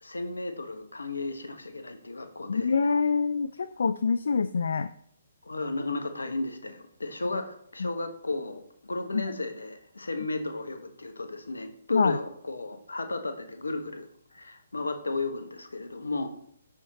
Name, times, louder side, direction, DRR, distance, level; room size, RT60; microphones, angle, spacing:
voice 1, 0.0-2.8 5.4-14.1 14.3-16.3, left 2 dB, 85° left, 7 dB, 1.2 m, -34 dB
voice 2, 2.5-4.9 7.3-7.4 7.8-7.9 9.1-9.2 11.9-12.2, left 5 dB, 70° left, 11 dB, 0.3 m, -26 dB
6.4 x 5.7 x 4.1 m, 0.69 s
figure-of-eight pair, 135°, 0 cm